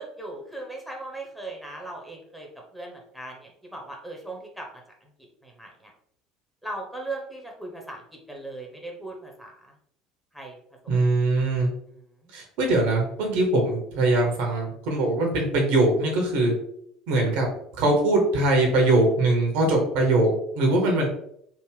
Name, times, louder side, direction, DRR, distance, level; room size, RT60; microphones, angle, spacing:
voice 1, 0.0-2.5 2.7-4.7 5.0-5.1 5.4-5.9 6.6-8.0 8.3-9.7 10.3-10.6, right 2 dB, 5° left, -1 dB, 1.1 m, -38 dB
voice 2, 10.9-11.7 12.3-16.5 17.1-17.5 17.8-21.1, right 2 dB, 60° right, 1 dB, 1.0 m, -22 dB
3.5 x 2.4 x 3.3 m, 0.70 s
figure-of-eight pair, 65°, 3 cm